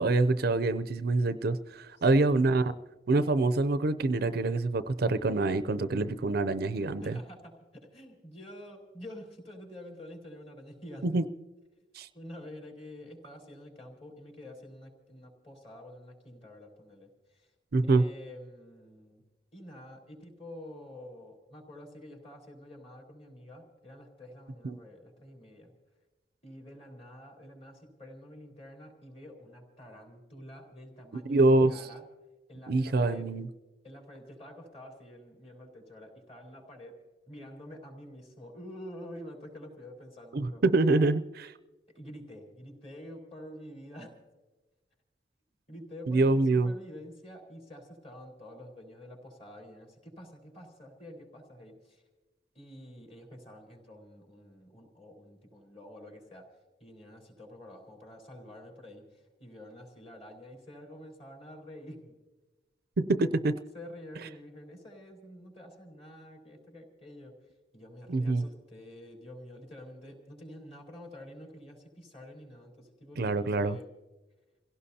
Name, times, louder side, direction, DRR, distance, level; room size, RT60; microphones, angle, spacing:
voice 1, 0.0-2.7 3.1-7.2 11.0-11.2 12.0-12.1 17.7-18.0 24.6-24.8 31.3-31.7 32.7-33.5 40.3-41.5 46.1-46.7 63.0-63.5 68.1-68.4 73.2-73.8, right 2 dB, 60° right, 0.5 m, -25 dB
voice 2, 1.9-2.4 7.0-11.2 12.1-17.5 17.8-19.2 19.5-25.7 26.4-32.0 32.5-33.3 33.8-37.0 37.3-40.6 41.9-44.2 45.7-52.0 52.5-56.5 56.8-62.2 63.7-73.9, left 1 dB, 35° left, 4.2 m, -48 dB
28.0 x 17.0 x 2.8 m
head